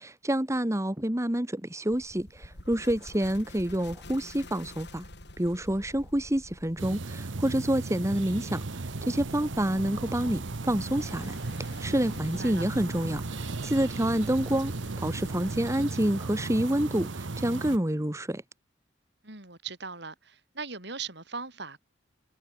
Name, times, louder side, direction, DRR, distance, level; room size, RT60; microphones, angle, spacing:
voice 1, 0.0-5.1 5.4-18.4, right 1 dB, 15° right, 1.5 m, -28 dB
sound 1, 1.9-15.7, left 1 dB, 65° left, 5.9 m, -49 dB
sound 2, 6.8-17.8, right 3 dB, 85° right, 1.0 m, -36 dB
voice 2, 19.2-21.8, right 5 dB, 65° right, 7.6 m, -39 dB
head